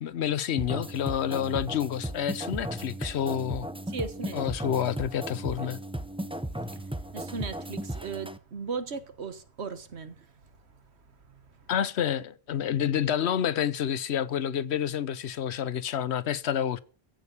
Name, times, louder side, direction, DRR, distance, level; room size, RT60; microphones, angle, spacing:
voice 1, 0.0-3.7 4.3-5.8 11.7-16.8, left 9 dB, 85° left, 1.0 m, -29 dB
sound 1, 0.6-8.4, right 1 dB, 5° right, 0.6 m, -36 dB
voice 2, 3.9-4.4 6.7-6.8 7.1-10.3 11.3-11.4, right 4 dB, 85° right, 1.6 m, -37 dB
15.0 x 6.5 x 8.5 m
omnidirectional pair, 1.1 m